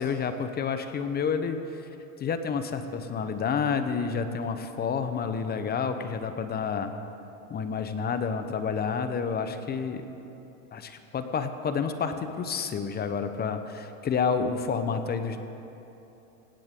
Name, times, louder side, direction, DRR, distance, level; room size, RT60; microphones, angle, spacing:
voice 1, 0.0-1.8 2.2-6.9 7.5-10.0 10.7-15.4, left 6 dB, 20° left, 9 dB, 0.9 m, -29 dB
18.0 x 16.5 x 3.8 m, 2.9 s
hypercardioid pair, 115°, 43 cm